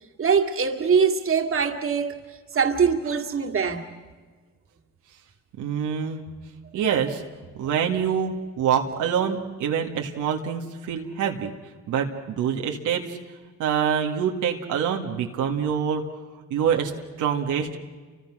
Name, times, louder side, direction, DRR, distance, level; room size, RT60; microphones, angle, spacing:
voice 1, 0.2-3.9, right 6 dB, 45° right, 2.4 m, -23 dB
voice 2, 5.6-6.2 6.7-7.2 7.6-11.5 11.9-13.2 13.6-16.0 16.5-16.9 17.2-17.8, right 8 dB, 85° right, 2.0 m, -25 dB
30.0 x 25.0 x 6.3 m
cardioid pair, 90°, 30 cm